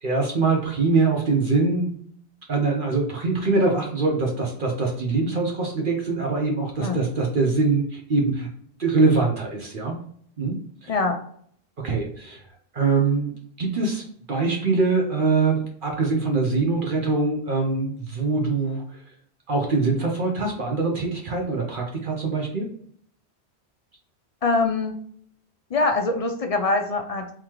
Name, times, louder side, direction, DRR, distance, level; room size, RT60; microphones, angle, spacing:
voice 1, 0.0-1.9 2.5-8.5 8.8-10.0 10.4-10.6 10.8-10.9 11.8-12.4 12.7-19.0 19.5-22.7, right 3 dB, 55° right, 0 dB, 0.9 m, -23 dB
voice 2, 24.4-24.9 25.7-27.3, left 3 dB, 55° left, 5 dB, 0.4 m, -23 dB
3.8 x 2.9 x 3.0 m, 0.62 s
omnidirectional pair, 1.1 m